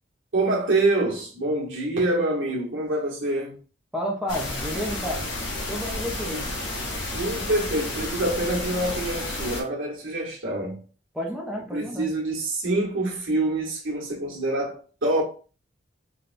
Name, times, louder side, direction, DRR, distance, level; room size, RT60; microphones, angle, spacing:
voice 1, 0.3-3.6 6.3-6.5 7.1-10.8 11.7-15.2, right 2 dB, 75° right, 1.1 m, -26 dB
voice 2, 3.9-5.3 5.7-6.5 11.1-12.1, equal, 5° right, 0.4 m, -31 dB
sound 1, 4.3-9.6, left 2 dB, 65° left, 0.8 m, -31 dB
4.5 x 2.1 x 2.4 m
head